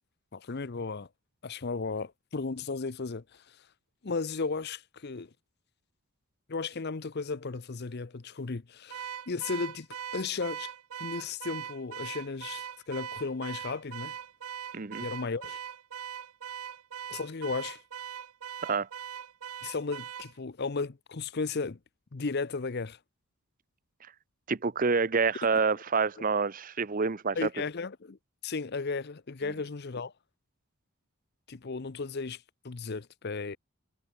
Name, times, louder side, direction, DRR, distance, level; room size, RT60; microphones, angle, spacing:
voice 1, 0.3-1.1 1.4-3.6 4.0-5.3 6.5-9.9 10.1-10.7 11.0-14.2 15.0-15.6 17.1-17.8 19.6-21.8 22.1-23.0 26.2-26.3 27.4-28.2 28.4-30.1 31.5-33.6, left 4 dB, 50° left, 0.7 m, -35 dB
Car / Alarm, 8.9-20.3, right 9 dB, 80° right, 0.6 m, -41 dB
voice 2, 14.7-15.1 18.6-18.9 24.0-24.1 24.5-27.5, right 4 dB, 40° right, 0.7 m, -28 dB
head